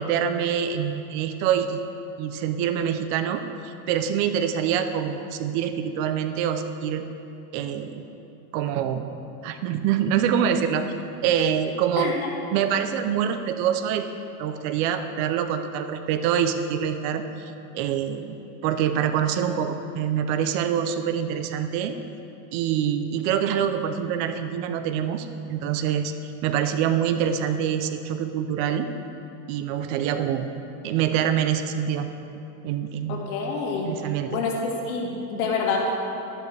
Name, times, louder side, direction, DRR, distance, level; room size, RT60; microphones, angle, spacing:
voice 1, 0.0-1.8 2.2-7.0 7.5-8.0 8.5-9.1 9.4-10.9 11.2-12.1 12.5-14.1 14.4-17.2 17.7-18.4 18.6-22.0 22.5-28.9 29.5-30.5 30.8-32.1 32.6-33.2 33.9-34.4, right 8 dB, 50° right, 9 dB, 0.7 m, -25 dB
voice 2, 12.0-12.3 33.1-33.9 34.3-34.5 34.8-35.9, left 4 dB, 80° left, -1 dB, 2.2 m, -27 dB
11.5 x 10.5 x 3.4 m, 2.8 s
supercardioid pair, 150°, 43 cm